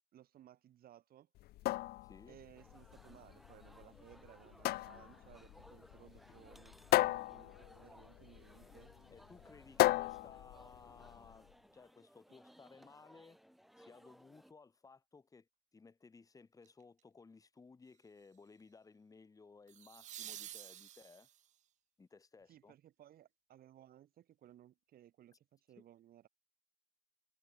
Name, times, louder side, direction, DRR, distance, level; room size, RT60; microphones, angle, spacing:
voice 1, 0.1-1.3 2.3-8.9 22.5-26.3, right 12 dB, 65° right, 4.6 m, -61 dB
sound 1, 1.4-11.4, left 17 dB, 65° left, 0.4 m, -36 dB
voice 2, 2.0-2.4 9.1-11.5 11.7-13.4 13.8-21.3 22.0-22.7, left 4 dB, 20° left, 1.4 m, -59 dB
sound 2, 2.6-14.5, equal, ahead, 2.5 m, -62 dB
sound 3, 16.6-17.0 19.7-21.6 24.4-24.5, right 12 dB, 45° right, 0.4 m, -50 dB
cardioid pair, 110°, 17 cm